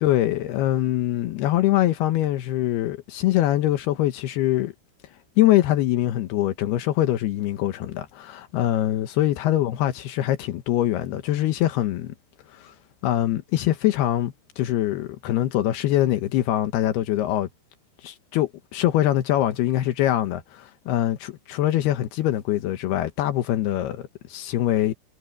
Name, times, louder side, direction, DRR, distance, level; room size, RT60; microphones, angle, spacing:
voice 1, 0.0-4.7 5.4-12.1 12.5-12.7 13.0-17.5 18.0-24.9, left 13 dB, 80° left, 3.0 m, -23 dB
omnidirectional pair, 4.6 m